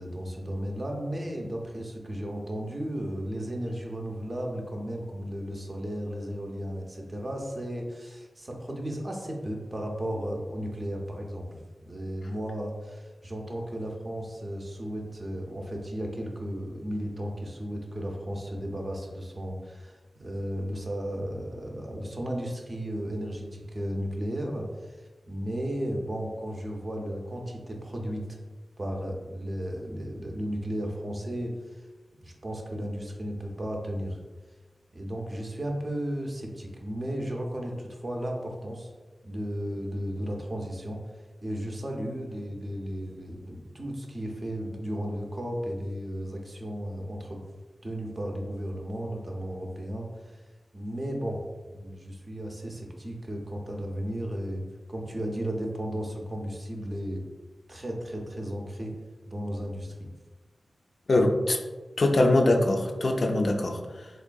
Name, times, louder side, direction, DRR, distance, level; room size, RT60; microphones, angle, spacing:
voice 1, 0.0-28.2 28.8-31.9 32.2-34.2 34.9-38.9 39.2-41.0 41.4-47.4 47.8-50.4 50.7-51.4 51.7-57.2 57.7-58.9 59.3-60.1, equal, 30° right, 1 dB, 0.5 m, -34 dB
voice 2, 61.1-61.6 62.0-64.1, left 2 dB, 50° left, 3 dB, 0.3 m, -23 dB
3.5 x 3.3 x 2.2 m, 1.3 s
wide cardioid pair, 125°, 0 cm